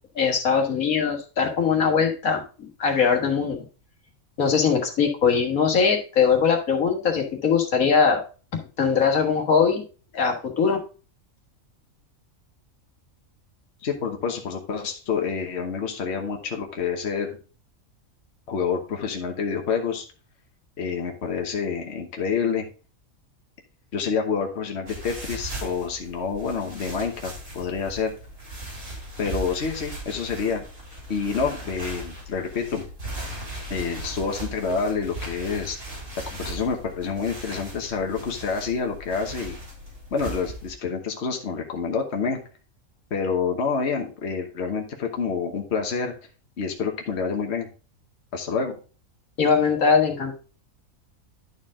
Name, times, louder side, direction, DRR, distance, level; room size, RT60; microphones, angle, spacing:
voice 1, 0.2-2.4 2.8-3.6 4.4-8.2 8.8-9.8 10.1-10.8 49.4-50.3, left 6 dB, 80° left, 2 dB, 1.9 m, -21 dB
voice 2, 13.8-17.4 18.5-20.0 20.8-22.6 23.9-28.1 29.2-30.6 31.1-32.8 33.7-35.8 36.3-39.6 40.1-42.4 43.1-46.1 46.6-47.7 48.3-48.8, left 5 dB, 55° left, 2 dB, 1.3 m, -28 dB
sound 1, 24.9-40.7, right 1 dB, 80° right, 3.8 m, -38 dB
11.5 x 4.4 x 3.6 m, 0.36 s
omnidirectional pair, 1.4 m